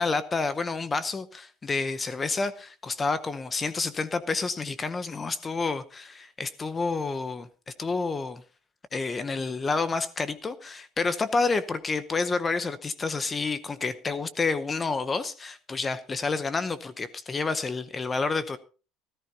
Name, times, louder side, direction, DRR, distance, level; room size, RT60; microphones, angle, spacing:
voice 1, 0.0-7.5 7.8-8.4 8.9-18.6, left 4 dB, 15° left, 0.8 m, -29 dB
18.0 x 13.5 x 2.8 m
cardioid pair, 175°, 0 cm